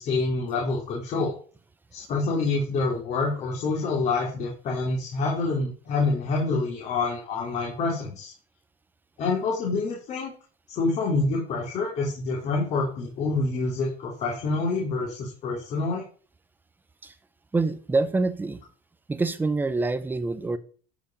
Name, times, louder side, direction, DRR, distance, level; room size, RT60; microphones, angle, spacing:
voice 1, 0.0-1.3 1.9-8.3 9.2-10.3 10.7-16.0, left 3 dB, 45° left, -2 dB, 2.9 m, -27 dB
voice 2, 17.5-18.6 19.1-20.6, right 3 dB, 10° right, 13 dB, 0.8 m, -26 dB
12.0 x 5.2 x 5.2 m, 0.41 s
cardioid pair, 140°, 16 cm